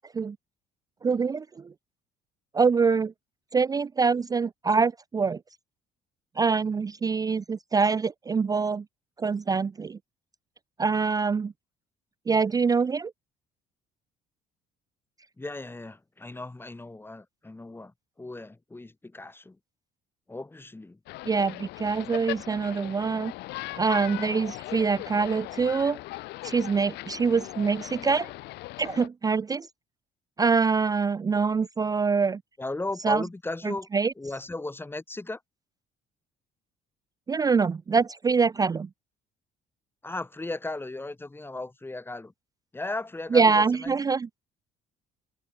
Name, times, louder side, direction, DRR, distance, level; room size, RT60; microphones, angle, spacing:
voice 1, 1.0-1.7 2.5-3.1 3.5-5.4 6.4-8.8 9.2-10.0 10.8-11.5 12.3-13.1 21.3-23.3 23.8-26.0 26.4-28.3 28.8-29.7 30.4-32.4 33.0-33.2 33.6-34.1 37.3-38.9 43.3-44.3, right 5 dB, 20° right, 0.4 m, -24 dB
voice 2, 15.4-19.6 20.3-21.0 32.6-33.9 34.2-35.4 40.0-42.3 42.7-43.9, left 2 dB, 15° left, 3.6 m, -36 dB
sound 1, 21.1-29.1, left 18 dB, 85° left, 3.4 m, -39 dB
cardioid pair, 110°, 17 cm